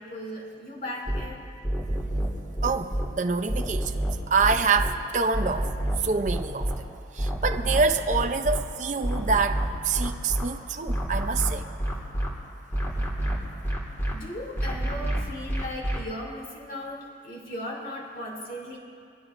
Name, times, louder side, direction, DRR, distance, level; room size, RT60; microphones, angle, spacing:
voice 1, 0.0-1.4 14.1-18.8, left 1 dB, 50° left, -2 dB, 2.8 m, -37 dB
sound 1, 1.1-1.2 1.6-3.1 3.5-4.9 5.3-6.8 7.2-8.6 9.0-10.4 10.9-12.3 12.7-14.1 14.6-16.0, right 1 dB, 15° left, 1.9 m, -27 dB
voice 2, 2.6-4.0 4.3-5.7 6.0-6.9 7.1-11.7, right 4 dB, 45° right, 6 dB, 0.6 m, -26 dB
23.0 x 16.5 x 2.6 m, 2.4 s
head